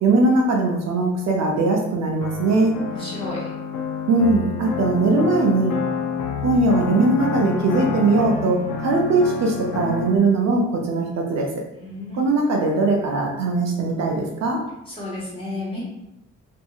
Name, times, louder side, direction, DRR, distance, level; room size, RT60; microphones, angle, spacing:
voice 1, 0.0-2.7 4.1-5.8 6.4-11.5 12.1-14.6, right 3 dB, 60° right, 0 dB, 0.6 m, -20 dB
sound 1, 2.2-10.2, left 6 dB, 75° left, 0.5 m, -28 dB
voice 2, 2.9-3.4 11.8-12.2 14.9-15.8, left 2 dB, 20° left, -6 dB, 1.2 m, -32 dB
2.6 x 2.6 x 2.3 m, 0.87 s
cardioid pair, 90°, 30 cm